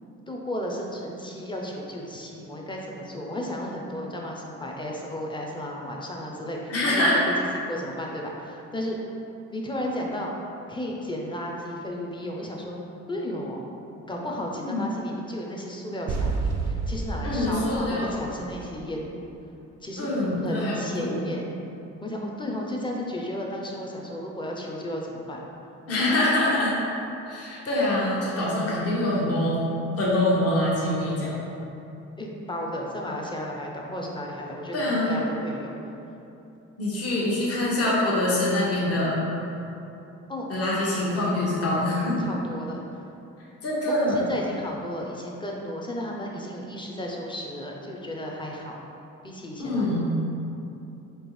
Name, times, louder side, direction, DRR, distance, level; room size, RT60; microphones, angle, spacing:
voice 1, 0.3-9.0 9.5-10.3 10.7-12.8 13.1-13.7 14.1-19.3 19.8-21.5 22.0-25.5 32.2-35.7 40.3-40.5 42.2-43.0 43.9-48.8 49.2-49.9, equal, 15° left, -1 dB, 0.5 m, -34 dB
voice 2, 6.7-7.2 14.6-14.8 17.2-18.2 20.0-21.2 25.9-26.7 27.3-29.6 30.0-31.4 34.7-35.3 36.8-39.2 40.5-42.1 43.6-44.3 49.6-50.1, left 1 dB, 50° left, -6 dB, 1.1 m, -24 dB
sound 1, 16.1-19.0, right 3 dB, 60° right, 0.4 m, -30 dB
4.4 x 2.8 x 3.1 m, 2.8 s
cardioid pair, 90°, 30 cm